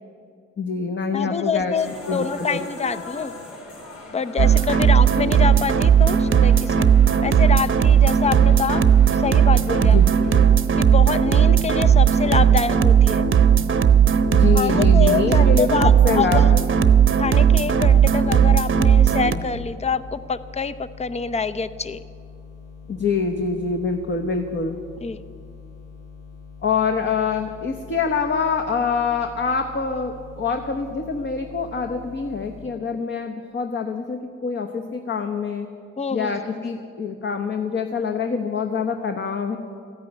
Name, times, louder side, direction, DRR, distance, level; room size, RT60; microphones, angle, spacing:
voice 1, 0.6-1.7 2.1-3.0 9.9-10.1 14.3-16.7 22.9-24.8 26.6-35.7 36.1-39.6, left 5 dB, 40° left, 5 dB, 1.1 m, -25 dB
voice 2, 1.1-3.3 4.1-6.9 7.2-8.8 9.1-10.0 10.8-13.2 14.5-16.5 17.2-22.0 25.0-25.2 36.0-36.4, left 5 dB, 20° left, 13 dB, 0.6 m, -26 dB
sound 1, 1.8-10.5, left 2 dB, 65° left, 3.8 m, -40 dB
sound 2, 4.4-19.4, right 8 dB, 40° right, 0.9 m, -16 dB
sound 3, 17.7-32.7, left 6 dB, 85° left, 2.5 m, -43 dB
14.0 x 9.5 x 9.9 m, 2.3 s
cardioid pair, 90°, 30 cm